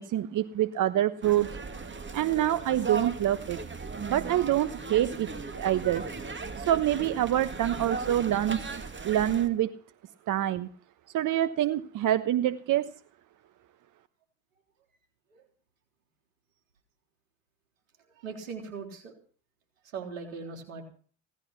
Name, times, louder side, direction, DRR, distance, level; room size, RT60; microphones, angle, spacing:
voice 1, 0.0-1.6 2.1-3.6 4.1-6.0 6.6-8.6 9.0-9.7 10.3-10.7 11.1-12.9, right 12 dB, 50° right, 13 dB, 1.1 m, -26 dB
sound 1, 1.2-9.5, right 4 dB, 30° right, 2.6 m, -37 dB
voice 2, 18.2-19.1 19.9-20.8, right 5 dB, 85° right, 4 dB, 3.7 m, -39 dB
17.0 x 12.5 x 5.8 m, 0.43 s
hypercardioid pair, 60°, 40 cm